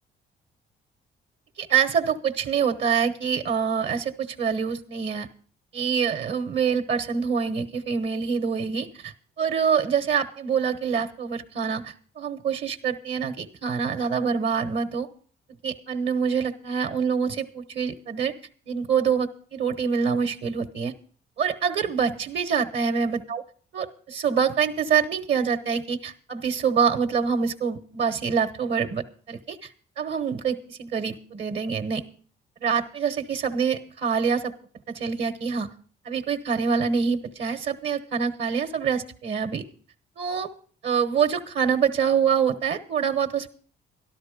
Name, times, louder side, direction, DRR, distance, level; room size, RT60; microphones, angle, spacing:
voice 1, 1.6-5.3 5.7-15.1 15.6-18.3 18.7-20.9 21.4-23.4 23.7-29.7 30.0-32.1 32.6-34.5 34.9-35.7 36.0-39.6 40.2-40.5 40.8-43.5, right 6 dB, 65° right, 6 dB, 1.2 m, -25 dB
12.5 x 12.5 x 5.1 m, 0.43 s
cardioid pair, 90°, 20 cm